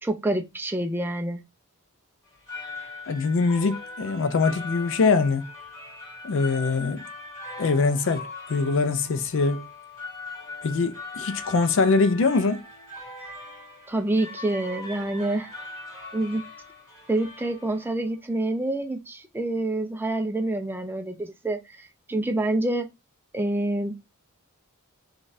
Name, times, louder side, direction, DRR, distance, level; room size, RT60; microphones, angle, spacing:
voice 1, 0.0-1.4 13.9-15.5 16.1-16.4 17.1-22.9 23.3-24.0, right 1 dB, 10° right, 0.4 m, -27 dB
sound 1, 2.2-18.1, left 3 dB, 15° left, 1.6 m, -40 dB
voice 2, 3.1-5.5 6.2-7.1 7.6-9.7 10.6-12.6, left 4 dB, 60° left, 0.4 m, -23 dB
3.8 x 2.4 x 2.5 m
head